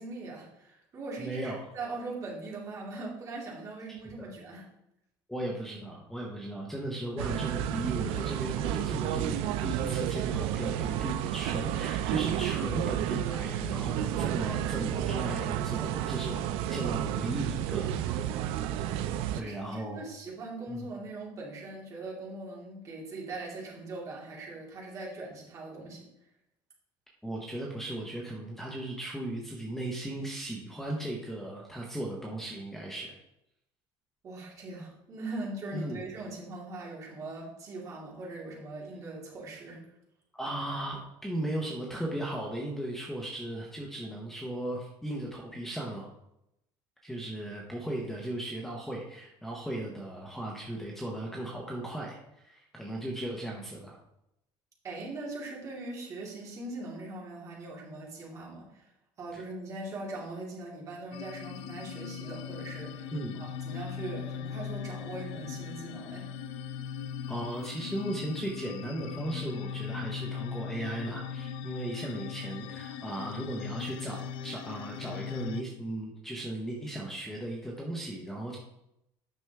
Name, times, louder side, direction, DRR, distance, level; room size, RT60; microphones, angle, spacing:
voice 1, 0.0-4.7 19.3-26.0 34.2-39.8 54.8-58.9 59.2-63.1 63.4-66.3, right 2 dB, 35° right, -3 dB, 2.4 m, -41 dB
voice 2, 1.2-1.7 3.9-4.3 5.3-18.3 19.3-20.0 20.7-20.9 27.2-33.2 35.7-36.1 40.3-46.1 47.0-54.0 59.3-59.4 63.1-63.4 67.3-78.6, right 1 dB, 5° left, -1 dB, 1.0 m, -37 dB
sound 1, 7.2-19.4, right 11 dB, 80° right, 0.5 m, -31 dB
sound 2, 61.1-75.6, left 7 dB, 70° left, 0.4 m, -39 dB
9.4 x 6.2 x 3.4 m, 0.83 s
cardioid pair, 160°, 10 cm